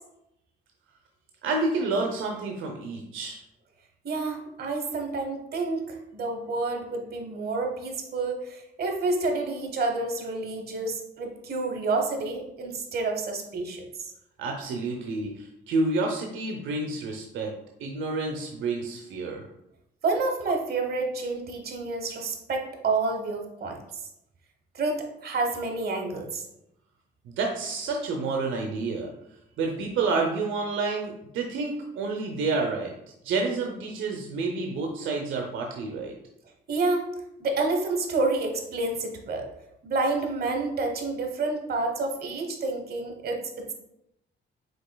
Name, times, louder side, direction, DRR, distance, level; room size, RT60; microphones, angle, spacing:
voice 1, 1.4-3.4 14.4-17.5 17.8-19.4 27.2-29.1 29.6-32.9 33.2-36.1, right 3 dB, 80° right, 1 dB, 0.6 m, -29 dB
voice 2, 4.0-14.1 20.0-23.8 24.7-26.5 36.7-37.1 37.4-39.5 39.8-43.7, right 3 dB, 50° right, 3 dB, 1.0 m, -29 dB
5.3 x 4.0 x 2.2 m, 0.83 s
cardioid pair, 90°, 20 cm